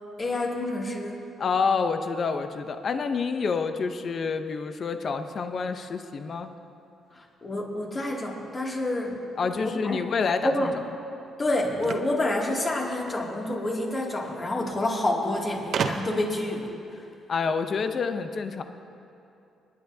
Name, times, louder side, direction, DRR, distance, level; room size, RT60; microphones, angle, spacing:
voice 1, 0.2-1.2 7.1-9.3 9.6-10.0 10.4-10.7 11.4-16.7 17.0-17.1, left 1 dB, 35° left, -2 dB, 2.5 m, -28 dB
voice 2, 1.4-6.5 9.4-10.7 17.3-18.6, left 5 dB, 50° left, 8 dB, 0.7 m, -28 dB
sound 1, 11.8-13.2 14.3-14.4 14.7-14.8 15.7-16.4, right 6 dB, 65° right, 0.7 m, -32 dB
27.5 x 10.5 x 2.8 m, 2.7 s
cardioid pair, 90°, 0 cm